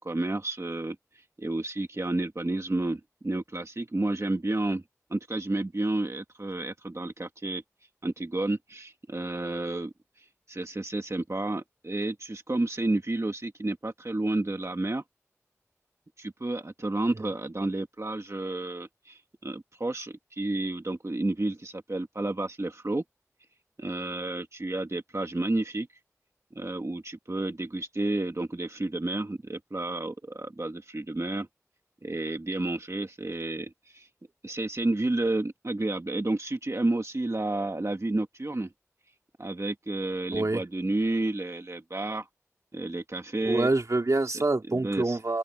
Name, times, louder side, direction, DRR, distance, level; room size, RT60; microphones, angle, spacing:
voice 1, 0.0-4.8 5.1-7.6 8.0-15.0 16.2-23.0 23.8-25.9 26.5-31.5 32.0-34.1 34.4-38.7 39.4-42.3 42.7-43.7 44.2-44.3 44.7-45.2, right 2 dB, 60° right, 1.6 m, -31 dB
voice 2, 40.3-40.6 43.4-45.4, right 2 dB, 90° right, 2.5 m, -26 dB
open air
wide cardioid pair, 45°, 5 cm